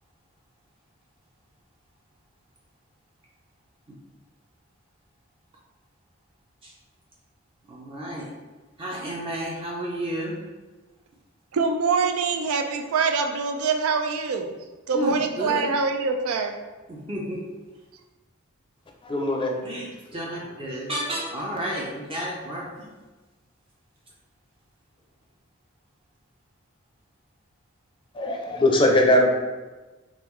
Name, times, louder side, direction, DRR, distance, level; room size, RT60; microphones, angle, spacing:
voice 1, 7.7-8.3 8.8-10.4 14.9-15.6 16.9-17.4 19.6-22.9, right 1 dB, 25° right, -3 dB, 0.5 m, -31 dB
voice 2, 11.5-14.5 14.9-16.5, right 4 dB, 85° right, 5 dB, 0.4 m, -24 dB
voice 3, 19.0-19.8 28.1-29.3, left 1 dB, 25° left, 1 dB, 0.5 m, -21 dB
3.7 x 3.0 x 3.1 m, 1.2 s
head